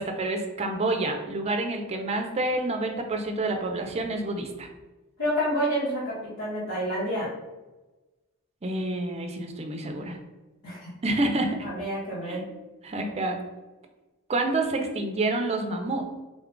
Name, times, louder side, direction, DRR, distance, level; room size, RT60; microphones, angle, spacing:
voice 1, 0.0-4.7 8.6-10.2 11.0-11.7 12.3-12.4 12.8-13.4 14.3-16.1, right 2 dB, 30° right, 3 dB, 0.5 m, -28 dB
voice 2, 5.2-7.3 10.6-10.9 11.6-12.4, equal, 65° left, -11 dB, 1.2 m, -29 dB
3.8 x 2.3 x 3.7 m, 1.1 s
head